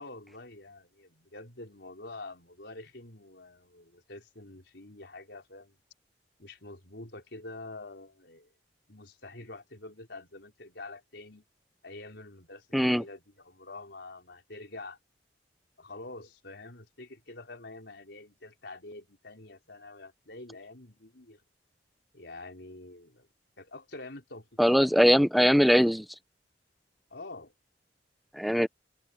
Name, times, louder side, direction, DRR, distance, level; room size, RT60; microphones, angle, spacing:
voice 1, 0.0-5.8 6.4-8.5 8.9-11.5 11.8-15.0 15.8-21.4 22.1-23.3 23.6-24.9 27.1-27.5, left 2 dB, 70° left, 5.3 m, -46 dB
voice 2, 12.7-13.0 24.6-26.0 28.4-28.7, equal, ahead, 0.8 m, -21 dB
open air
head